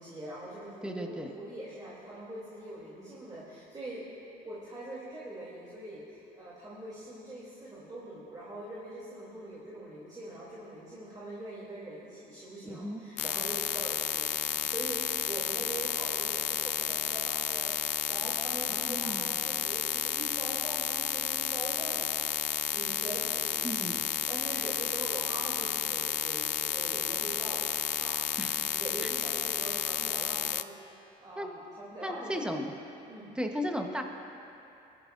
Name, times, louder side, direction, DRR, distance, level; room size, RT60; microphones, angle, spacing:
voice 1, 0.0-4.0 4.4-28.4 28.7-30.7 31.2-32.6 33.1-33.3, right 1 dB, 25° right, -7 dB, 3.0 m, -43 dB
voice 2, 0.8-1.3 12.7-13.0 18.7-19.3 23.6-24.0 28.4-28.5 29.0-29.1 31.4-31.5 32.0-32.6 33.3-34.0, equal, 5° right, 3 dB, 1.1 m, -35 dB
sound 1, 13.2-30.6, left 14 dB, 75° left, 0.4 m, -31 dB
21.0 x 13.0 x 2.6 m, 2.8 s
cardioid pair, 110°, 17 cm